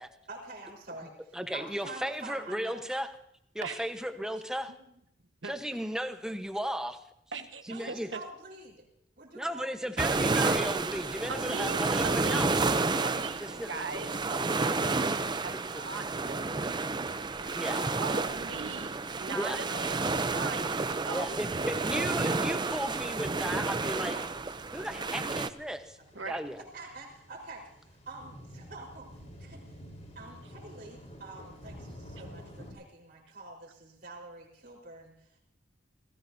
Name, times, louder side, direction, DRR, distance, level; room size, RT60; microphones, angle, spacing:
voice 1, 0.3-2.8 7.7-8.8 9.2-10.0 17.6-18.4 19.7-20.1 23.8-24.3 24.7-25.2 26.1-26.2 26.7-29.7 30.1-35.4, right 2 dB, 50° right, -8 dB, 4.4 m, -47 dB
voice 2, 1.3-3.1 3.5-4.7 5.4-7.0 7.7-8.1 9.3-12.5 13.4-13.7 17.6-17.8 19.3-19.6 21.1-24.2 24.7-26.0 26.3-26.6, equal, 5° right, 6 dB, 1.1 m, -35 dB
voice 3, 7.3-8.2 11.3-12.6 13.0-17.5 18.0-20.0 20.3-21.9 26.1-26.4, right 4 dB, 85° right, 6 dB, 1.4 m, -41 dB
sound 1, 10.0-25.5, right 3 dB, 25° right, 0.6 m, -30 dB
sound 2, 22.1-32.7, equal, 40° left, 4.2 m, -51 dB
29.0 x 17.5 x 2.8 m, 0.78 s
head